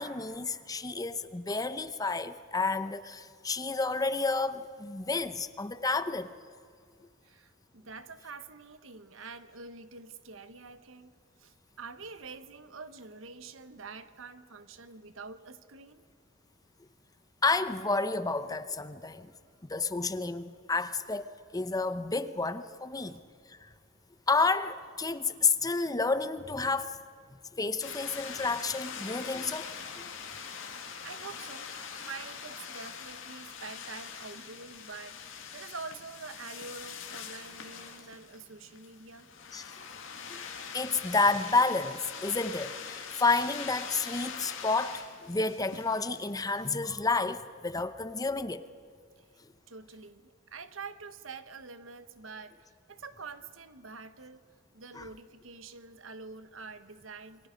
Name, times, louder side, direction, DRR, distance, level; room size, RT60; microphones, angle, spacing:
voice 1, 0.0-6.3 17.4-19.3 19.6-23.2 24.3-26.9 27.6-29.7 30.0-30.1 39.5-39.6 40.3-40.4 40.7-48.7 54.9-55.1, left 3 dB, 20° left, 0.8 m, -30 dB
voice 2, 7.2-11.1 11.4-16.1 23.0-23.2 31.0-39.3 49.2-49.3 49.7-54.4 54.7-57.5, right 4 dB, 85° right, 1.2 m, -46 dB
sound 1, 27.8-46.8, left 6 dB, 75° left, 2.2 m, -43 dB
28.5 x 23.5 x 5.2 m
head